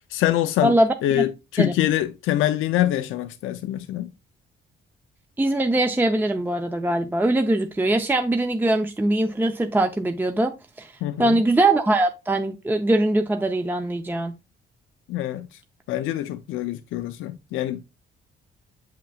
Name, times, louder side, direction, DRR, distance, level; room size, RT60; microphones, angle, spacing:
voice 1, 0.1-0.7 1.0-4.1 11.0-11.4 15.1-15.6 15.9-17.8, left 13 dB, 90° left, 0.5 m, -25 dB
voice 2, 0.6-1.2 1.6-1.7 5.4-10.5 10.8-10.9 11.2-14.3, right 1 dB, 10° right, 0.6 m, -22 dB
7.3 x 5.8 x 2.3 m
cardioid pair, 90°, 20 cm